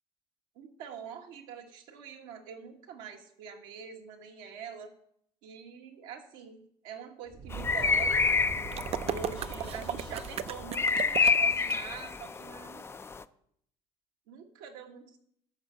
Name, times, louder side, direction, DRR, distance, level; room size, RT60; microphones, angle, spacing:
voice 1, 0.5-4.9 5.4-8.2 9.0-12.9 14.3-15.2, right 7 dB, 80° right, 2 dB, 1.6 m, -45 dB
Fire, 7.3-12.5, right 5 dB, 65° right, 1.4 m, -44 dB
sound 1, 7.5-13.2, left 4 dB, 20° left, 0.4 m, -29 dB
sound 2, 8.7-11.8, right 10 dB, 45° right, 0.5 m, -35 dB
12.5 x 4.5 x 6.2 m, 0.69 s
supercardioid pair, 90°, 14 cm